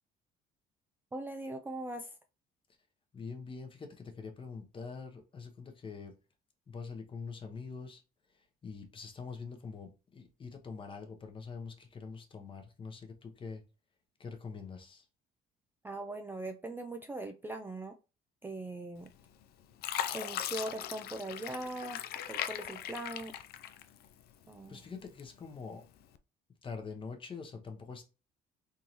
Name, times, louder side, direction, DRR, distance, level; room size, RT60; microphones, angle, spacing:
voice 1, 1.1-2.1 15.8-17.9 18.4-19.1 20.1-22.0 22.3-23.3 24.5-24.8, right 2 dB, 10° right, 0.3 m, -40 dB
voice 2, 3.1-6.1 6.7-8.0 8.3-13.6 14.2-15.1 24.7-25.8 26.6-28.1, left 5 dB, 30° left, 0.8 m, -44 dB
Fill (with liquid), 19.1-19.4 19.8-24.2 24.6-25.5 26.0-26.2, left 10 dB, 70° left, 0.4 m, -39 dB
3.6 x 2.7 x 3.0 m
cardioid pair, 110°, 17 cm